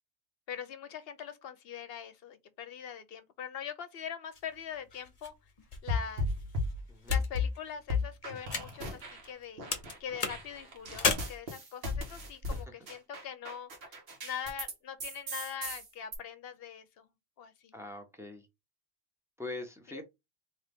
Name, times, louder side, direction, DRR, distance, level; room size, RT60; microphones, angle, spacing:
voice 1, 0.5-5.3 5.8-6.3 7.1-9.7 10.0-14.0 14.2-17.1 17.4-17.8 19.9-20.0, left 8 dB, 65° left, 0.8 m, -42 dB
sound 1, 4.3-9.4 9.7-11.1, left 4 dB, 40° left, 0.8 m, -36 dB
sound 2, 5.9-7.5 7.9-9.3 9.6-14.7 15.0-16.2, left 3 dB, 65° right, 1.3 m, -35 dB
voice 2, 6.9-7.2 12.5-12.7 17.7-18.5 19.4-20.0, left 2 dB, 5° right, 0.7 m, -43 dB
3.9 x 2.9 x 3.5 m
omnidirectional pair, 1.1 m